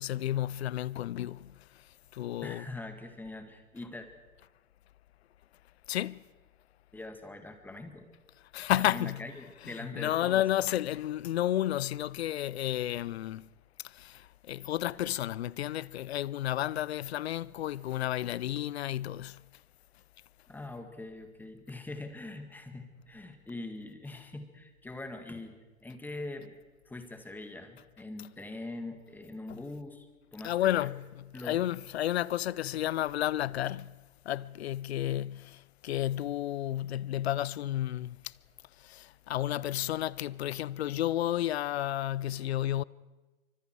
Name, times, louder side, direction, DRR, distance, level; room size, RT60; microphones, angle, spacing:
voice 1, 0.0-1.5 2.2-2.7 5.9-6.2 8.5-9.2 9.6-13.4 14.0-14.1 14.5-19.4 29.5-29.6 30.4-33.9 34.3-35.6 35.8-38.2 38.9-42.8, left 13 dB, 45° left, 0.6 m, -31 dB
voice 2, 2.4-4.1 6.9-8.1 8.9-10.4 20.5-26.6 26.9-30.9 31.3-31.6, left 2 dB, 5° left, 1.9 m, -43 dB
27.0 x 24.5 x 4.8 m
hypercardioid pair, 130°, 43 cm